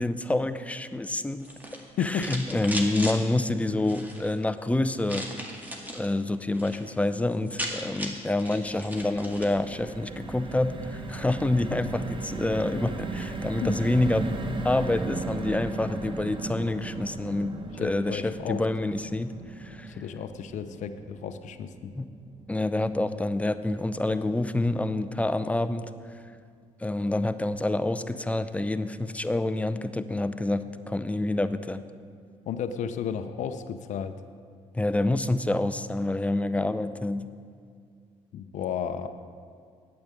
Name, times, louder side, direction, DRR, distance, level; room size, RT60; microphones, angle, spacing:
voice 1, 0.0-1.5 2.0-5.2 5.9-20.0 22.0-22.1 22.5-25.9 26.8-31.9 34.7-37.3, left 2 dB, 10° left, 11 dB, 0.6 m, -27 dB
sound 1, 1.4-3.2 3.8-4.3 5.1-6.1 6.4-6.8 7.1-7.2 7.3-9.6, equal, 15° right, 1.9 m, -36 dB
voice 2, 2.0-2.3 13.6-13.7 17.8-18.7 20.0-21.9 32.5-34.2 38.3-39.1, left 8 dB, 70° left, 9 dB, 0.6 m, -33 dB
sound 2, 8.1-24.4 24.8-25.0 25.2-25.4, right 3 dB, 40° right, 1.1 m, -37 dB
8.8 x 7.8 x 8.6 m, 2.2 s
supercardioid pair, 70°, 13 cm